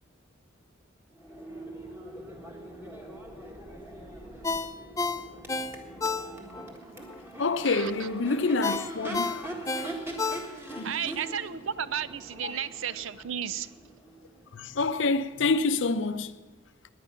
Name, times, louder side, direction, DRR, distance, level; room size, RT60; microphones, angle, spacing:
Crowd / Race car auto racing / Accelerating revving vroom, 1.1-15.0, right 2 dB, 10° right, 1.6 m, -42 dB
Ringtone, 4.4-6.7 7.1-7.2 8.6-10.9 11.2-11.4, left 4 dB, 15° left, 0.5 m, -31 dB
voice 1, 7.4-9.5 9.8-9.9 10.8-10.9 12.4-12.5 14.5-16.3, left 3 dB, 60° left, 0.6 m, -27 dB
voice 2, 10.8-13.7, right 8 dB, 70° right, 0.5 m, -33 dB
18.0 x 10.0 x 5.7 m
head